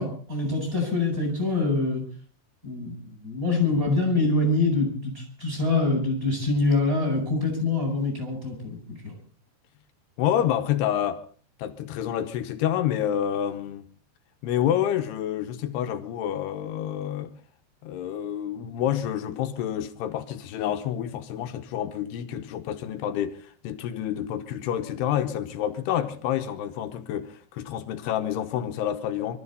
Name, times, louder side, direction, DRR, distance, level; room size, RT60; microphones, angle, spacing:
voice 1, 0.0-2.0 2.6-9.1, left 3 dB, 20° right, 7.6 m, -25 dB
voice 2, 10.2-11.2 11.6-13.8 14.4-17.3 17.8-23.4 23.6-29.4, left 10 dB, 75° left, 2.9 m, -28 dB
24.5 x 14.0 x 4.1 m
omnidirectional pair, 4.9 m